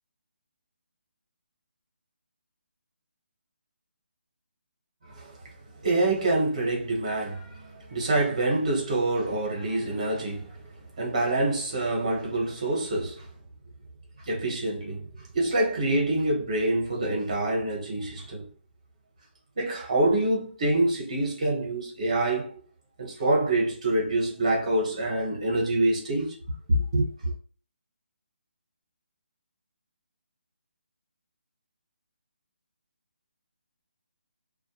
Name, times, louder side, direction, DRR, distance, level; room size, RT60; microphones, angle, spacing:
voice 1, 5.8-10.5 11.0-13.2 14.3-15.0 15.3-18.4 19.6-22.6 23.0-26.4 26.7-27.3, right 2 dB, 30° right, 0.8 m, -26 dB
2.2 x 2.1 x 2.7 m
hypercardioid pair, 180°, 6 cm